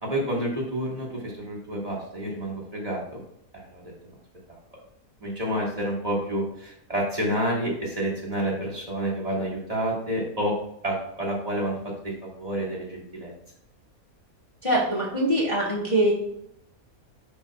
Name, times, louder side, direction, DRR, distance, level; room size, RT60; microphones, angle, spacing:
voice 1, 0.0-3.2 3.5-3.8 5.2-10.5 10.8-13.3, right 1 dB, 25° right, -5 dB, 1.8 m, -29 dB
voice 2, 14.6-16.1, right 1 dB, 25° left, -4 dB, 1.3 m, -23 dB
10.0 x 4.6 x 2.3 m, 0.75 s
omnidirectional pair, 1.5 m